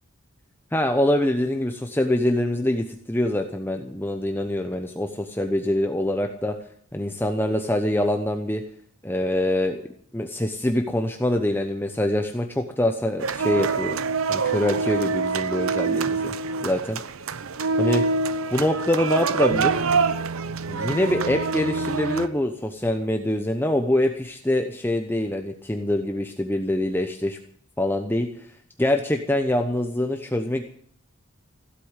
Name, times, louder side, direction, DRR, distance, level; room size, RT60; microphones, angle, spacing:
voice 1, 0.7-6.5 6.9-8.6 9.0-9.8 10.1-14.0 14.3-16.3 16.6-17.0 17.8-18.0 18.5-19.8 20.7-27.4 27.8-28.3 28.8-30.6, left 1 dB, 10° left, 5 dB, 0.9 m, -24 dB
sound 1, 13.2-22.3, right 4 dB, 75° right, 0.8 m, -25 dB
16.0 x 8.4 x 8.2 m, 0.62 s
head